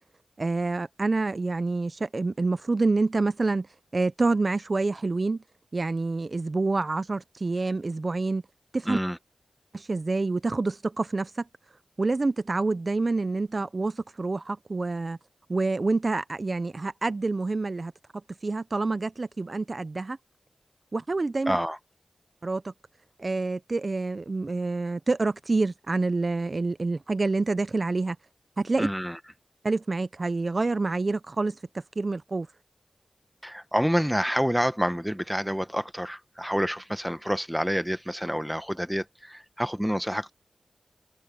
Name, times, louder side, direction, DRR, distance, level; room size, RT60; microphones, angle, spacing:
voice 1, 0.4-3.7 3.9-5.4 5.7-8.4 8.7-9.0 9.7-11.4 12.0-15.2 15.5-17.9 18.4-20.2 20.9-21.5 22.4-22.7 23.2-28.2 28.6-28.9 29.6-32.5, right 3 dB, 45° right, 0.5 m, -27 dB
voice 2, 8.9-9.2 21.5-21.8 28.8-29.2 33.4-40.3, equal, 5° right, 1.2 m, -28 dB
cardioid pair, 55°, 0 cm